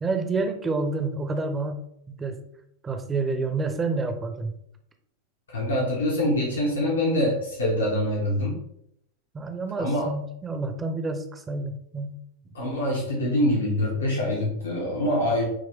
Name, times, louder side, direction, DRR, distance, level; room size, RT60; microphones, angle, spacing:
voice 1, 0.0-1.8 2.2-2.4 2.8-4.5 9.3-12.2 12.4-12.5, right 3 dB, 15° right, 6 dB, 0.9 m, -28 dB
voice 2, 5.5-8.6 9.8-10.1 12.5-15.4, left 1 dB, 65° left, -2 dB, 1.4 m, -25 dB
8.9 x 3.1 x 3.5 m, 0.75 s
figure-of-eight pair, 90°, 0 cm